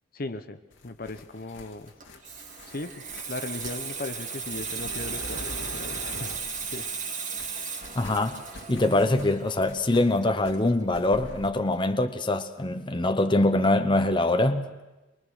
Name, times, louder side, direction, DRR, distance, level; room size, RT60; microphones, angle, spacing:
voice 1, 0.1-1.9 2.6-6.9, left 2 dB, 50° left, 1.0 m, -38 dB
sound 1, 0.7-7.1 7.4-11.5, left 2 dB, 90° left, 2.2 m, -45 dB
Water tap faucet / Sink (filling or washing), 1.9-11.2 11.5-11.7, right 5 dB, 45° right, 2.2 m, -36 dB
voice 2, 8.0-8.4 8.7-14.7, left 2 dB, 25° left, 0.9 m, -23 dB
23.0 x 22.5 x 6.3 m
head